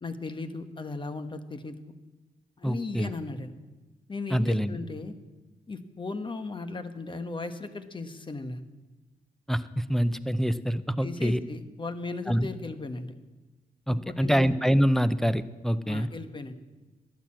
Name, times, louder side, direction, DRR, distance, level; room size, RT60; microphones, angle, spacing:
voice 1, 0.0-1.7 2.6-3.5 4.1-5.2 5.7-8.6 11.0-13.1 13.9-14.5 15.8-16.5, left 3 dB, 35° left, 9 dB, 1.2 m, -36 dB
voice 2, 2.6-3.1 4.3-4.8 9.5-11.4 12.3-12.5 13.9-16.1, equal, ahead, 13 dB, 0.6 m, -25 dB
12.0 x 11.0 x 7.5 m, 1.2 s
cardioid pair, 75°, 15 cm